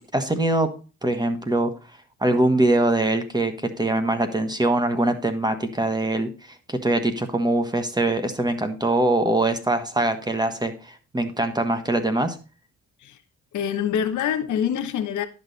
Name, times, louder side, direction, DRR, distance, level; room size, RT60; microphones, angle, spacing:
voice 1, 0.1-0.7 1.0-1.7 2.2-6.3 6.7-12.4, right 2 dB, 15° right, 1.4 m, -23 dB
voice 2, 13.5-15.3, left 8 dB, 75° left, 1.2 m, -25 dB
10.5 x 6.3 x 4.1 m
cardioid pair, 90°, 30 cm